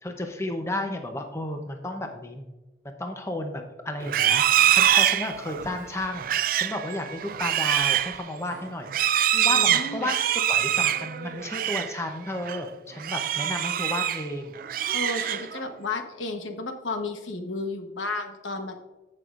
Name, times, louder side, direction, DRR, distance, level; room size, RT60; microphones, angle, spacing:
voice 1, 0.0-2.4 2.8-9.2 9.4-14.5, left 1 dB, 15° left, 4 dB, 0.7 m, -33 dB
Livestock farm animals working animals, 4.0-12.0 12.3-12.6 13.0-14.3 14.6-15.7, right 11 dB, 45° right, 0.3 m, -24 dB
voice 2, 9.3-10.1 14.9-18.7, left 3 dB, 85° left, 5 dB, 1.1 m, -33 dB
15.0 x 6.2 x 2.5 m, 1.1 s
head